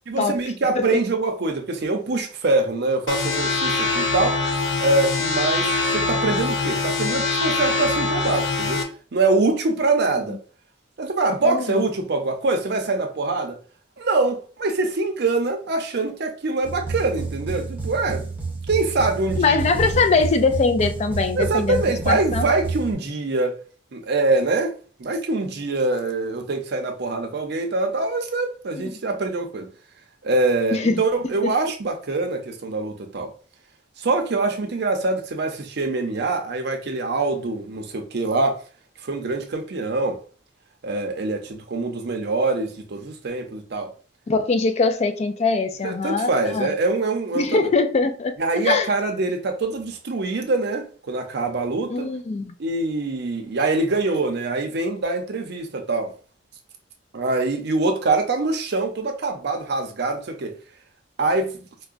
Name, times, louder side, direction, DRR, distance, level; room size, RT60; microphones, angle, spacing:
voice 1, 0.1-4.4 4.8-8.8 9.1-10.4 11.0-13.6 14.0-18.3 18.7-19.6 21.3-23.6 23.9-29.7 30.2-33.3 34.0-38.6 39.0-40.2 40.8-43.9 45.8-47.7 48.4-52.1 52.6-56.1 57.1-60.5 61.2-61.7, right 3 dB, 60° right, 0.6 m, -24 dB
sound 1, 3.1-8.8, left 3 dB, 85° left, 0.6 m, -23 dB
voice 2, 11.4-11.8 19.4-22.5 30.7-31.0 31.4-31.5 44.3-46.7 47.4-48.3 48.6-48.9 51.9-52.5, left 4 dB, 35° left, 0.3 m, -22 dB
sound 2, 16.6-22.9, right 3 dB, 10° right, 0.7 m, -29 dB
4.6 x 2.1 x 2.5 m
head